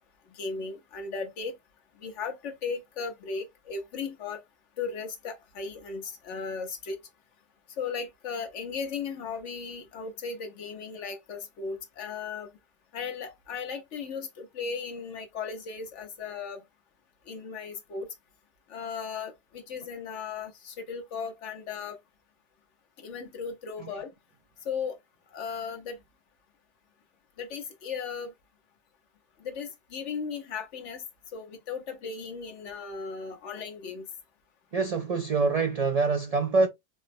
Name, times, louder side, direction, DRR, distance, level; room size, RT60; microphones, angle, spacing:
voice 1, 0.3-1.5 2.0-4.4 4.8-7.0 7.8-12.5 12.9-16.6 17.3-18.1 18.7-22.0 23.0-24.1 24.6-25.0 25.3-26.0 27.4-28.3 29.4-31.0 31.3-34.1, left 5 dB, 90° left, 1.2 m, -36 dB
voice 2, 34.7-36.7, right 4 dB, 70° right, 0.3 m, -25 dB
4.4 x 2.0 x 2.5 m
omnidirectional pair, 1.2 m